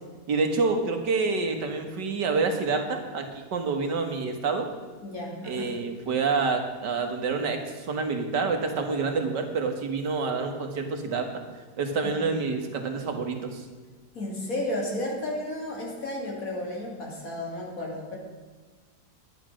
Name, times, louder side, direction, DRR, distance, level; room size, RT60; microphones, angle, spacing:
voice 1, 0.3-4.7 5.4-11.3 11.8-13.7, right 4 dB, 85° right, 5 dB, 2.1 m, -27 dB
voice 2, 5.0-5.8 12.0-12.3 14.1-18.2, left 1 dB, 55° left, -2 dB, 3.1 m, -33 dB
11.0 x 10.0 x 6.3 m, 1.4 s
omnidirectional pair, 1.8 m